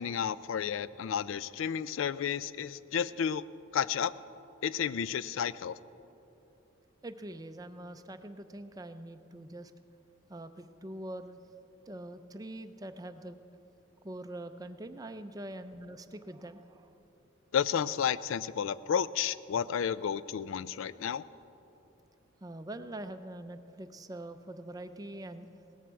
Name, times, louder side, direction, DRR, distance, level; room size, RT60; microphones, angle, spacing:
voice 1, 0.0-3.4 3.7-4.1 4.6-5.7 17.5-21.2, left 8 dB, 80° left, 17 dB, 0.4 m, -32 dB
voice 2, 7.0-9.7 10.3-11.4 11.9-13.4 14.0-16.9 22.4-25.5, right 1 dB, 20° right, 9 dB, 0.5 m, -44 dB
18.0 x 13.5 x 4.6 m, 3.0 s
head